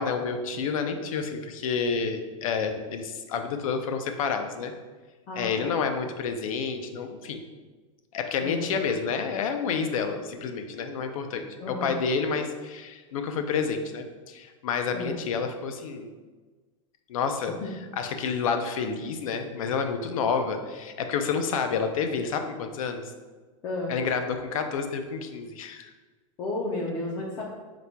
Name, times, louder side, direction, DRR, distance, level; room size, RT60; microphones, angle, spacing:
voice 1, 0.0-4.7 5.4-7.4 8.1-16.1 17.1-17.5 18.0-23.1 23.9-25.9, left 5 dB, 85° left, 6 dB, 0.5 m, -29 dB
voice 2, 5.3-5.7 8.4-8.8 11.6-12.0 14.9-15.2 17.6-17.7 23.6-23.9 26.4-27.4, left 2 dB, 25° left, -2 dB, 0.4 m, -32 dB
4.1 x 2.2 x 4.4 m, 1.3 s
supercardioid pair, 160°, 17 cm